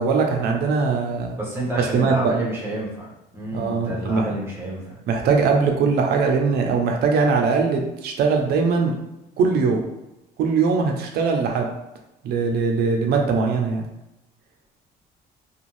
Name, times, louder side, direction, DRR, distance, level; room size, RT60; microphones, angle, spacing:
voice 1, 0.0-1.4 1.8-2.3 3.5-4.3 5.1-8.9 9.4-9.8 10.4-11.7 12.2-13.8, right 4 dB, 70° right, 2 dB, 0.6 m, -21 dB
voice 2, 1.3-5.0, right 1 dB, 15° right, -5 dB, 1.1 m, -30 dB
2.5 x 2.3 x 3.1 m, 0.93 s
cardioid pair, 110°, 17 cm